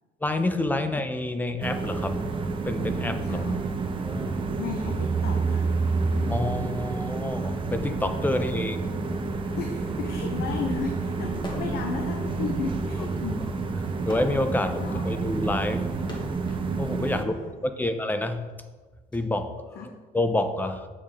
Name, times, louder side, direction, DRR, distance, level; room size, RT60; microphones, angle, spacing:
voice 1, 0.2-2.4 2.6-3.5 4.0-4.3 6.3-8.9 14.1-15.8 16.8-17.3 17.6-18.4 19.1-19.8 20.1-20.9, left 1 dB, 10° left, 8 dB, 0.7 m, -28 dB
sound 1, 1.6-17.2, right 4 dB, 30° right, 0.9 m, -29 dB
voice 2, 3.2-3.8 4.6-5.8 9.6-13.5 14.8-15.0 17.2-17.5 19.7-19.9, left 5 dB, 70° left, 3 dB, 1.0 m, -35 dB
sound 2, 11.4-11.9 12.3-16.7 17.5-19.2, left 1 dB, 30° left, 1.6 m, -44 dB
8.6 x 7.5 x 3.6 m, 1.3 s
cardioid pair, 110°, 17 cm